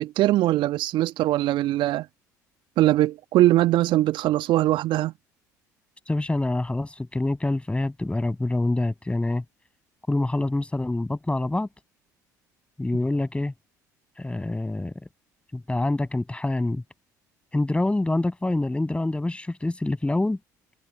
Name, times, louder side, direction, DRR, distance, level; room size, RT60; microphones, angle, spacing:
voice 1, 0.0-2.1 2.8-5.1, right 15 dB, 55° right, 1.5 m, -21 dB
voice 2, 6.1-9.4 10.1-11.7 12.8-13.5 14.2-15.1 15.5-16.8 17.5-20.4, left 2 dB, 10° left, 6.3 m, -26 dB
figure-of-eight pair, 60°, 10 cm